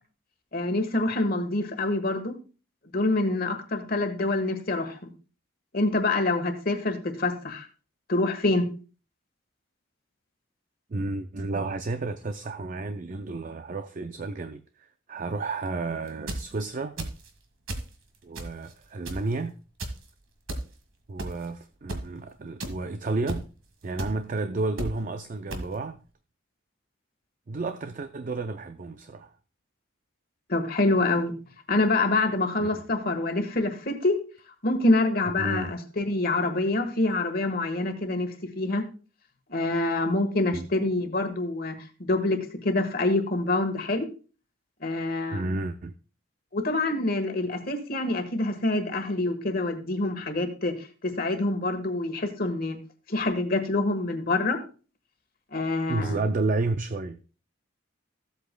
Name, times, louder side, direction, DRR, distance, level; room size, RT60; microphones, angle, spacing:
voice 1, 0.5-2.4 2.9-5.1 5.7-7.7 8.1-8.7 30.5-31.3 31.7-34.2 34.6-38.8 39.5-41.7 42.1-44.1 44.8-45.5 46.5-50.9 51.2-52.8 53.1-54.6 55.5-56.2, left 2 dB, 45° left, 1.3 m, -26 dB
voice 2, 10.9-17.1 18.2-19.5 21.1-23.5 23.8-26.0 27.5-29.3 32.6-32.8 35.4-35.7 40.5-40.7 45.3-45.9 55.9-57.2, right 3 dB, 40° right, 0.4 m, -31 dB
sound 1, 16.1-16.5 17.0-17.3 17.7-17.9 18.3-18.7 19.0-19.3 19.8-20.0 20.5-20.6 21.2-21.4 21.9-22.0 22.6-22.7 23.3-23.4 24.0-24.1 24.8-24.9 25.5-25.6, right 1 dB, 75° right, 1.6 m, -32 dB
15.0 x 8.1 x 2.2 m
head